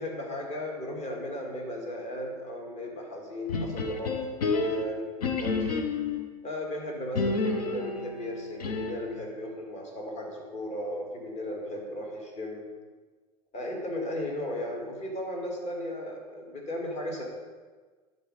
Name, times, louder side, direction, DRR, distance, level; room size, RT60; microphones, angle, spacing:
voice 1, 0.0-5.7 6.4-12.6 13.5-17.2, left 1 dB, 35° left, 0 dB, 2.1 m, -36 dB
sound 1, 3.5-6.3 7.1-9.1, left 3 dB, 80° left, 0.9 m, -30 dB
11.0 x 4.5 x 5.0 m, 1.4 s
hypercardioid pair, 85°, 20 cm